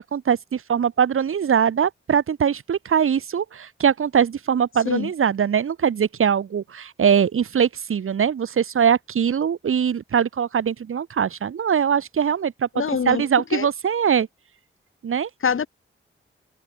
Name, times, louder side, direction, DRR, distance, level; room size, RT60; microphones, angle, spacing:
voice 1, 0.0-14.3 15.0-15.3, right 7 dB, 85° right, 1.7 m, -22 dB
voice 2, 12.7-13.2 13.5-13.7 15.4-15.7, left 6 dB, 75° left, 4.2 m, -24 dB
wide cardioid pair, 100°, 21 cm